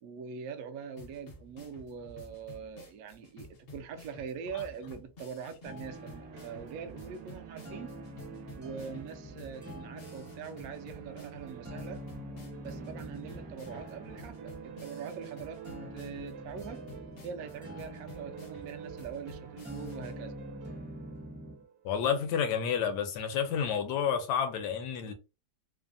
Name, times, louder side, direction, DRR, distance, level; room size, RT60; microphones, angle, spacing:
voice 1, 0.0-7.9 8.6-12.0 12.6-16.8 17.2-20.3, right 6 dB, 70° right, 0.8 m, -43 dB
sound 1, 1.0-20.1, left 2 dB, 50° left, 0.7 m, -52 dB
sound 2, 5.6-21.6, equal, 10° right, 0.5 m, -47 dB
sound 3, 5.9-22.6, right 9 dB, 90° right, 1.2 m, -49 dB
voice 2, 21.8-25.1, left 7 dB, 75° left, 1.2 m, -30 dB
3.1 x 2.0 x 2.5 m
omnidirectional pair, 1.8 m